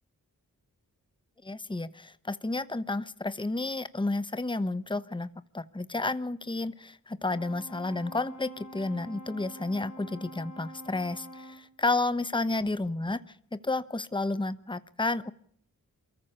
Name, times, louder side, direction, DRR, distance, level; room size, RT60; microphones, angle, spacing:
voice 1, 1.4-5.3 5.5-13.2 13.5-15.3, left 2 dB, 15° left, 15 dB, 1.1 m, -31 dB
Brass instrument, 7.3-11.7, equal, 55° left, 4.2 m, -46 dB
23.0 x 14.5 x 8.4 m, 0.65 s
cardioid pair, 45°, 35 cm